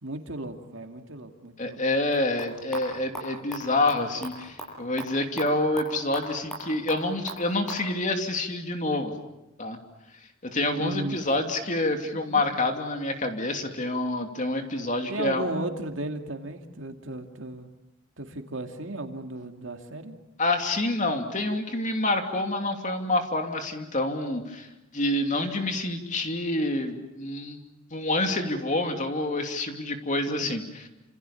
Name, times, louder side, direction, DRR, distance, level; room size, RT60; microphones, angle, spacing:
voice 1, 0.0-1.8 10.8-11.2 15.1-17.7 18.2-20.1 30.3-30.5, right 1 dB, 65° right, 5 dB, 2.5 m, -35 dB
voice 2, 1.6-9.1 9.6-9.8 10.5-15.5 20.4-24.7 24.9-27.6 27.9-30.9, left 2 dB, 40° left, 5 dB, 2.8 m, -27 dB
sound 1, 2.1-7.9, right 1 dB, 5° left, 7.6 m, -40 dB
28.0 x 27.5 x 7.1 m, 0.93 s
head